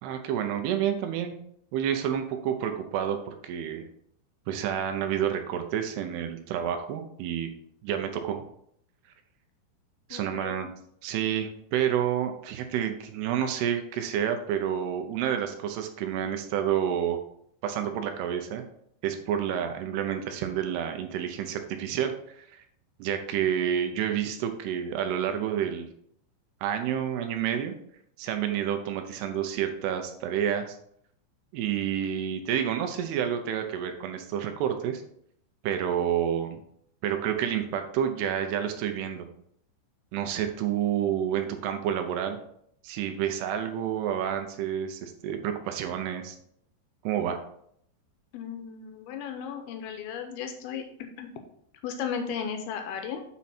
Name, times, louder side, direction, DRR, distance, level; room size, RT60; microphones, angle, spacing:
voice 1, 0.0-1.4 1.7-3.9 4.5-7.5 7.8-8.4 10.1-10.7 11.0-17.2 17.6-18.6 19.0-22.6 23.0-25.9 26.6-27.7 28.2-30.8 31.5-35.0 35.6-36.6 37.0-39.3 40.1-42.4 42.8-46.4 47.0-47.4, right 9 dB, 80° right, 6 dB, 2.5 m, -29 dB
voice 2, 10.1-10.6 48.3-50.8 51.2-51.3 51.8-53.2, left 7 dB, 80° left, 5 dB, 2.3 m, -35 dB
8.4 x 4.6 x 4.2 m, 0.69 s
omnidirectional pair, 5.3 m